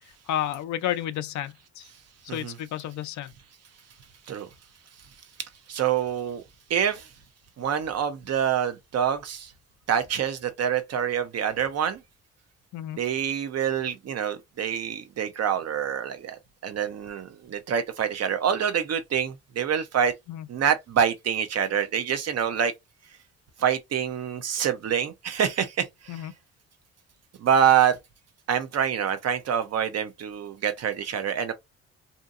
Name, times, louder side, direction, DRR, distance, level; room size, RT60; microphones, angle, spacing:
voice 1, 0.3-1.9 2.2-3.3 12.7-13.0 20.3-20.5 26.1-26.3, left 11 dB, 70° left, 0.5 m, -31 dB
voice 2, 5.4-6.4 6.7-7.1 7.6-9.5 9.9-12.0 13.0-20.1 20.5-22.7 23.6-26.3 27.4-28.0 28.5-31.5, right 8 dB, 55° right, 0.8 m, -26 dB
2.7 x 2.6 x 2.4 m
cardioid pair, 90°, 30 cm